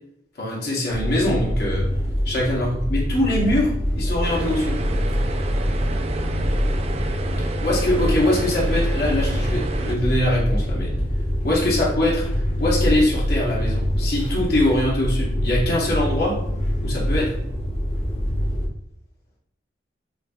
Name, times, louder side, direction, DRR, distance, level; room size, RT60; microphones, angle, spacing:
voice 1, 0.4-1.8 2.2-4.8 7.6-10.9 11.4-12.2 12.6-16.4 16.8-17.3, left 1 dB, 60° left, -5 dB, 1.0 m, -22 dB
sound 1, 0.9-18.7, equal, 35° left, 0.6 m, -24 dB
sound 2, 4.2-10.0, right 3 dB, 35° right, 0.3 m, -31 dB
5.1 x 2.6 x 2.3 m, 0.74 s
head